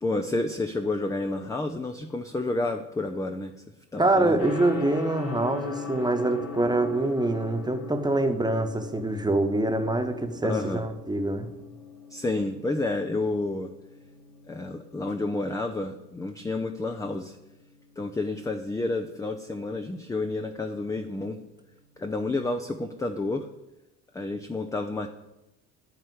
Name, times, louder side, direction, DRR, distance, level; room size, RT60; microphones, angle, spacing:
voice 1, 0.0-3.5 3.9-4.4 10.4-10.8 12.1-13.7 14.5-17.4 18.0-21.4 22.0-23.5 24.1-25.1, left 2 dB, 5° left, 6 dB, 0.5 m, -30 dB
voice 2, 4.0-11.5, right 2 dB, 10° right, 6 dB, 1.2 m, -25 dB
Gong, 4.4-23.3, left 5 dB, 65° left, 2.9 m, -42 dB
11.0 x 4.4 x 7.9 m, 0.93 s
figure-of-eight pair, 60°, 49 cm